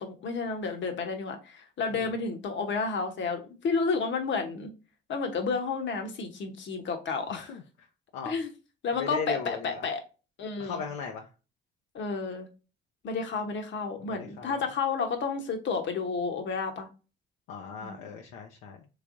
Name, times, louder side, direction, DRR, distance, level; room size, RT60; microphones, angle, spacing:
voice 1, 0.0-4.7 5.1-7.5 8.2-8.5 8.8-10.0 10.4-10.8 11.9-12.5 13.0-16.9 17.8-18.1, left 4 dB, 60° left, 0.9 m, -31 dB
voice 2, 7.3-7.9 8.1-8.4 8.9-9.9 10.6-11.3 14.0-14.6 17.5-18.9, left 6 dB, 85° left, 0.5 m, -38 dB
3.3 x 3.2 x 2.5 m
supercardioid pair, 60°, 21 cm